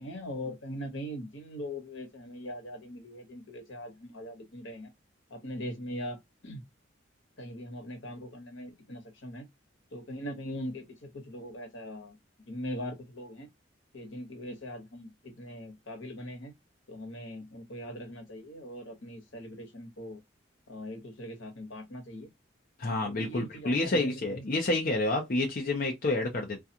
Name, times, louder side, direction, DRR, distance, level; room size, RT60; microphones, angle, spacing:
voice 1, 0.0-4.9 5.3-6.2 6.4-6.6 7.4-9.5 9.9-12.2 12.5-13.5 13.9-16.5 16.9-20.2 20.7-22.3 23.0-24.6, equal, 80° left, 1.1 m, -41 dB
voice 2, 22.8-26.6, left 2 dB, 45° left, 0.6 m, -29 dB
2.4 x 2.3 x 2.7 m
head